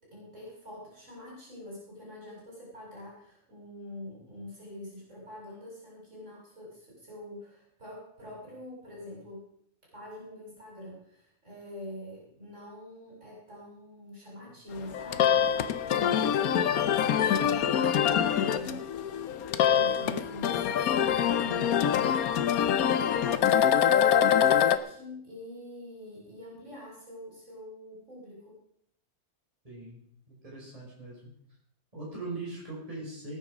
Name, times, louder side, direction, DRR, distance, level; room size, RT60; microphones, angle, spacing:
voice 1, 0.0-9.5 9.9-18.9 19.5-28.6, left 1 dB, 55° right, -4 dB, 6.3 m, -45 dB
sound 1, 14.8-24.8, left 9 dB, 75° left, 1.2 m, -25 dB
voice 2, 29.6-30.0 30.3-31.2 31.9-33.4, right 2 dB, 25° right, -5 dB, 5.7 m, -40 dB
18.5 x 9.5 x 5.0 m, 0.68 s
omnidirectional pair, 1.6 m